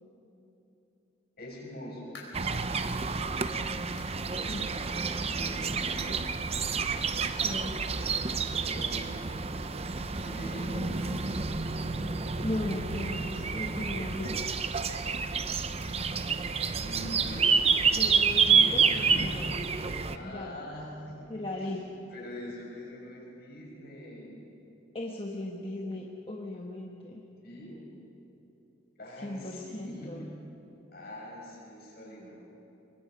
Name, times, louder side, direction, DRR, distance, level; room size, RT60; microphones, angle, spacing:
voice 1, 1.4-2.2 5.3-6.1 8.6-9.3 10.2-11.0 11.8-12.4 16.8-17.5 18.9-19.5 20.0-21.3 21.6-21.8 22.1-24.5 27.4-27.8 29.0-30.3 30.9-32.4, left 1 dB, 55° left, -3 dB, 6.4 m, -43 dB
sound 1, 2.1-2.6 3.1-3.2 4.0-4.2 4.6-4.7 5.2-5.3 6.3-6.4, left 3 dB, 75° left, 4.7 m, -50 dB
sound 2, 2.3-20.2, right 5 dB, 35° right, 0.7 m, -29 dB
voice 2, 7.3-7.8 12.4-14.5 17.9-19.5 20.2-20.6 21.3-21.8 24.9-27.2 29.2-30.3, left 1 dB, 30° left, -1 dB, 1.3 m, -37 dB
Strum, 11.0-16.3, right 1 dB, 15° right, 2.0 m, -53 dB
25.0 x 20.5 x 5.2 m, 3.0 s
head